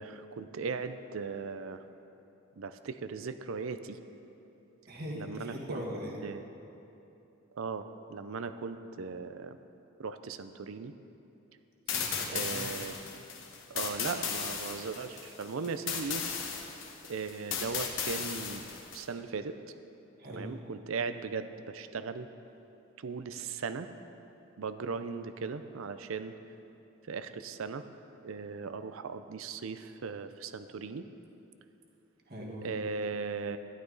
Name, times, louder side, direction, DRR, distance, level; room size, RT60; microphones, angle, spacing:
voice 1, 0.0-1.8 2.6-4.0 5.1-5.8 6.2-6.5 7.6-9.6 10.0-10.9 12.3-13.0 13.7-16.2 17.1-18.6 18.9-19.6 20.3-22.3 23.0-23.9 24.6-26.3 27.1-27.8 28.2-31.1 32.6-33.6, right 5 dB, 85° right, 10 dB, 0.5 m, -38 dB
voice 2, 4.9-6.3 11.9-12.8 20.2-20.5 32.3-32.8, equal, 50° right, -2 dB, 1.6 m, -41 dB
sound 1, 11.9-19.0, left 6 dB, 65° left, 1.3 m, -36 dB
12.5 x 11.0 x 4.0 m, 2.9 s
head